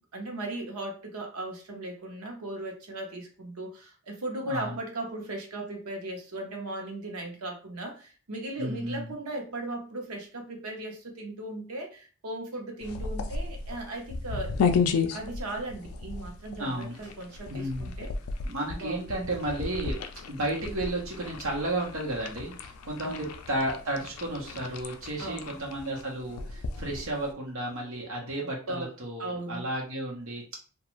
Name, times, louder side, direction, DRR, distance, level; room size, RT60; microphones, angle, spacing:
voice 1, 0.1-14.5 15.1-18.1 18.7-19.2 23.0-23.3 25.2-25.6 28.4-28.9 29.2-29.7, right 2 dB, 90° right, 2 dB, 0.8 m, -37 dB
voice 2, 4.4-4.8 8.6-9.1 16.6-17.0 17.5-17.9 18.4-19.9 20.3-30.6, right 1 dB, 65° right, -1 dB, 0.9 m, -33 dB
sound 1, 12.8-27.3, left 5 dB, 85° left, 0.4 m, -34 dB
2.4 x 2.3 x 3.0 m, 0.38 s
head